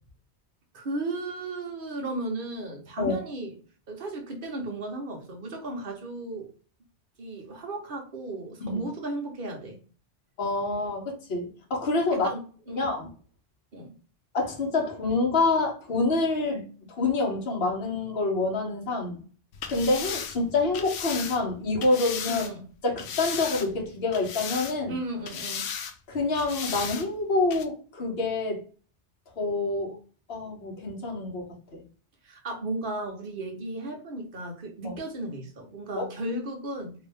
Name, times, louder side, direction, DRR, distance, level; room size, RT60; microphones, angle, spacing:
voice 1, 0.7-3.5 3.9-6.5 7.2-9.8 12.1-12.4 12.7-12.8 13.7-13.9 22.3-22.6 24.9-25.7 32.2-36.9, right 2 dB, 50° right, 1.1 m, -35 dB
voice 2, 10.4-12.3 12.8-13.1 14.3-19.2 19.7-22.4 22.8-24.9 26.1-28.6 29.4-30.0 30.3-31.8 34.8-35.0 36.0-36.1, left 3 dB, 60° left, 1.2 m, -27 dB
sound 1, 19.5-22.5 23.0-23.8 24.1-25.0 25.3-25.9 26.3-27.1 27.5-27.6, left 7 dB, 90° left, 0.9 m, -35 dB
2.9 x 2.6 x 3.3 m
omnidirectional pair, 1.2 m